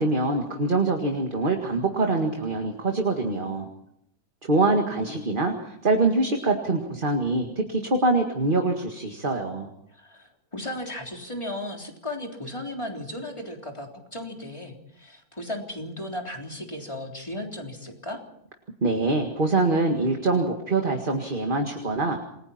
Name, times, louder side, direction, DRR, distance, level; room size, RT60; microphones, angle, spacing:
voice 1, 0.0-3.7 4.4-9.7 18.8-22.2, right 2 dB, 30° right, 3 dB, 2.0 m, -24 dB
voice 2, 9.9-18.2, left 1 dB, 15° left, 1 dB, 3.6 m, -35 dB
28.0 x 21.0 x 4.4 m, 0.73 s
omnidirectional pair, 1.8 m